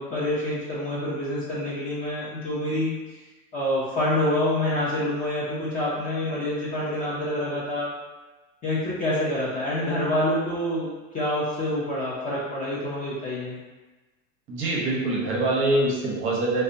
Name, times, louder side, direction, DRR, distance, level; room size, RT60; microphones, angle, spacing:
voice 1, 0.0-2.9 3.5-7.9 8.6-10.9 11.1-13.6, left 1 dB, 20° left, -8 dB, 0.4 m, -27 dB
voice 2, 14.5-16.6, right 2 dB, 30° right, -4 dB, 0.6 m, -24 dB
2.5 x 2.2 x 2.6 m, 1.2 s
supercardioid pair, 115°, 40 cm